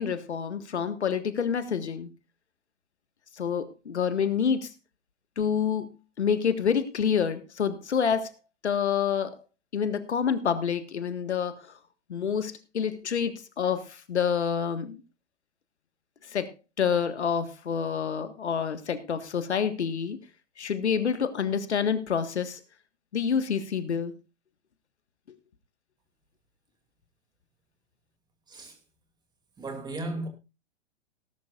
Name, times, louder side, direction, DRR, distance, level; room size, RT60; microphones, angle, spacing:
voice 1, 0.0-2.1 3.4-4.7 5.4-8.3 8.6-9.4 9.7-11.7 12.1-15.0 16.3-20.2 20.6-22.6 23.1-24.1, left 7 dB, 70° left, 1.7 m, -28 dB
voice 2, 29.6-30.3, right 2 dB, 10° right, 2.6 m, -35 dB
18.5 x 11.5 x 2.5 m
figure-of-eight pair, 115°, 35 cm